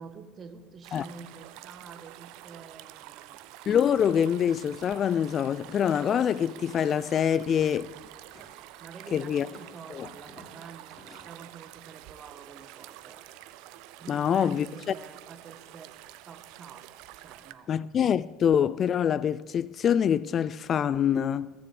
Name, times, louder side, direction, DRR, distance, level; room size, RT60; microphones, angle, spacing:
voice 1, 0.0-3.4 8.5-13.3 14.0-16.0 16.2-16.9 17.2-17.7, right 5 dB, 40° right, 1.3 m, -48 dB
sound 1, 0.8-17.5, right 15 dB, 70° right, 0.6 m, -48 dB
voice 2, 3.7-7.9 9.1-9.5 9.9-10.1 14.1-14.7 17.7-21.5, left 8 dB, 40° left, 0.3 m, -25 dB
sound 2, 5.6-8.6 8.9-11.3, left 2 dB, 25° left, 3.8 m, -55 dB
20.5 x 7.0 x 5.1 m
supercardioid pair, 95°, 0 cm